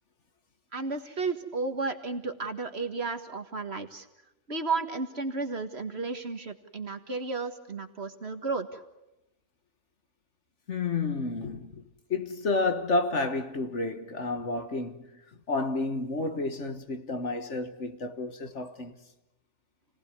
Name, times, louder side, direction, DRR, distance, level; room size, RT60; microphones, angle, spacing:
voice 1, 0.7-4.1 4.5-8.8, right 4 dB, 45° right, 1.9 m, -33 dB
voice 2, 10.7-15.1 15.5-19.0, left 3 dB, 55° left, 1.7 m, -30 dB
28.5 x 18.5 x 9.6 m
omnidirectional pair, 1.5 m